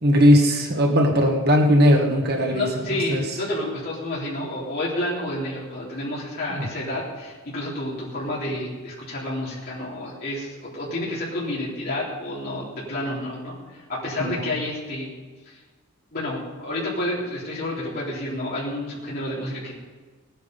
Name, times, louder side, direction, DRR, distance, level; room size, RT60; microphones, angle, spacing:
voice 1, 0.0-3.2 6.5-6.7 14.2-14.5, equal, 50° right, 1 dB, 1.7 m, -19 dB
voice 2, 2.5-15.1 16.1-19.7, left 1 dB, 45° left, -7 dB, 3.8 m, -30 dB
19.0 x 9.4 x 5.4 m, 1.4 s
head